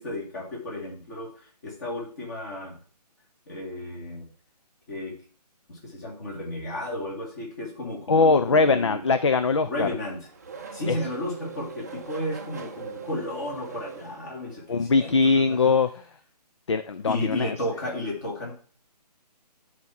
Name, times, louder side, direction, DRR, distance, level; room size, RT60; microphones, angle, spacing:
voice 1, 0.0-2.8 3.5-4.3 4.9-5.1 5.7-9.0 9.6-10.2 10.7-15.7 17.1-18.5, left 1 dB, 25° left, -2 dB, 2.5 m, -33 dB
voice 2, 8.1-9.9 10.9-11.0 14.7-15.9 16.7-17.5, left 4 dB, 45° left, 10 dB, 0.5 m, -21 dB
Race car auto racing / Accelerating revving vroom, 9.3-14.8, right 6 dB, 25° right, 0.6 m, -42 dB
9.3 x 4.2 x 5.8 m, 0.43 s
hypercardioid pair, 175°, 21 cm